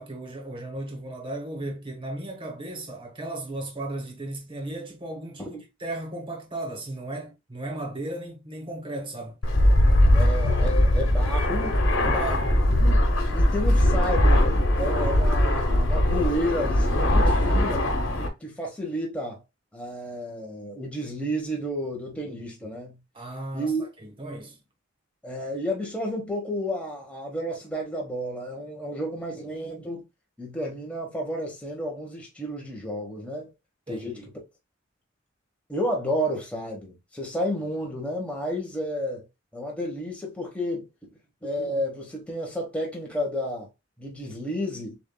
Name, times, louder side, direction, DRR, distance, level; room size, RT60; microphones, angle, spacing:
voice 1, 0.0-9.4 12.0-12.5 23.1-24.6 33.9-34.2, right 1 dB, 25° right, 1.1 m, -35 dB
Fixed-wing aircraft airplane, 9.4-18.3, left 1 dB, 85° left, 1.0 m, -20 dB
voice 2, 10.1-13.0 13.3-17.9 18.4-19.4 19.7-23.0 23.5-23.9 25.2-30.0 30.4-33.5 33.9-34.2 35.7-39.2 39.5-40.9 41.4-43.7 44.0-45.0, equal, 5° left, 1.0 m, -31 dB
7.0 x 2.5 x 2.2 m
head